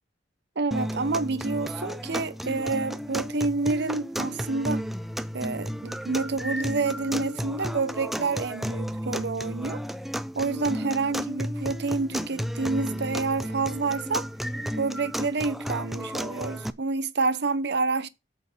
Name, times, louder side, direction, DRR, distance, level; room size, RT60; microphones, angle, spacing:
voice 1, 0.6-4.8 5.3-9.8 10.3-14.3 14.8-18.1, right 3 dB, 65° right, 0.8 m, -28 dB
sound 1, 0.7-16.7, equal, ahead, 0.5 m, -33 dB
8.4 x 4.7 x 6.0 m
head